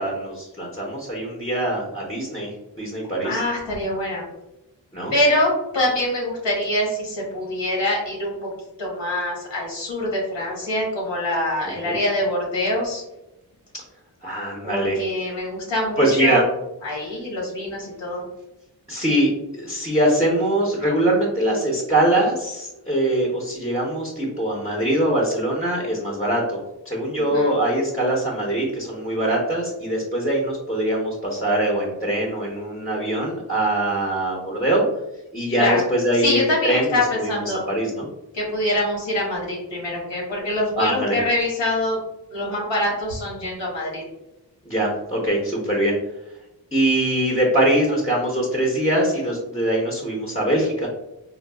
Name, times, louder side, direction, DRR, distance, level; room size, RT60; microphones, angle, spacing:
voice 1, 0.0-2.5 2.8-3.4 4.9-5.1 11.8-11.9 14.2-15.0 16.0-16.4 18.9-26.6 26.8-34.9 35.3-37.3 37.7-38.1 40.4-41.2 44.7-46.0 46.7-50.9, right 1 dB, 15° left, -3 dB, 0.9 m, -22 dB
voice 2, 3.2-4.2 5.1-8.5 8.8-13.0 14.6-16.5 16.8-18.2 27.2-27.5 35.6-35.8 36.2-37.7 38.3-42.0 42.3-44.0, left 1 dB, 90° left, -3 dB, 1.2 m, -24 dB
3.9 x 2.3 x 2.3 m, 0.91 s
cardioid pair, 50°, 43 cm